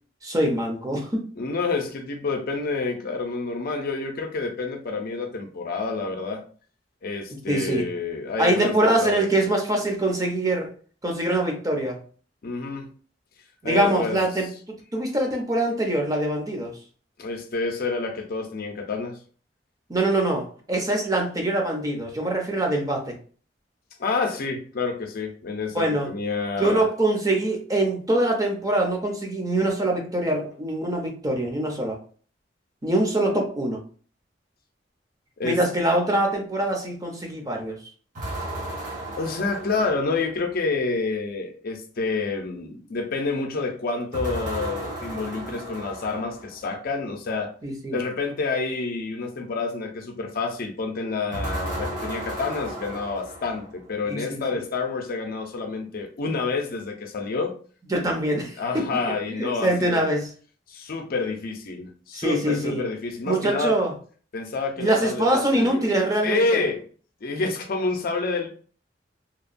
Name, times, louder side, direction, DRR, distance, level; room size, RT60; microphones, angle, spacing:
voice 1, 0.2-1.2 7.5-7.9 8.4-10.7 11.0-12.0 13.6-14.5 14.9-16.8 19.9-23.2 25.7-26.1 26.6-32.0 32.8-33.8 35.4-37.8 47.6-48.0 54.0-54.4 57.9-60.3 62.1-62.8 63.2-63.9 64.8-66.6, right 1 dB, 20° right, 1 dB, 0.6 m, -24 dB
voice 2, 1.4-6.4 7.0-9.3 12.4-12.9 13.6-14.2 17.2-19.2 24.0-26.9 35.4-35.6 39.2-47.5 47.9-57.5 58.6-60.1 60.7-63.8 64.3-65.8 66.2-66.8 67.2-68.5, left 3 dB, 55° left, 4 dB, 0.5 m, -28 dB
sound 1, 38.2-40.5 44.1-46.6 51.3-53.9, right 1 dB, 45° right, 0.9 m, -34 dB
2.9 x 2.2 x 2.5 m, 0.42 s
head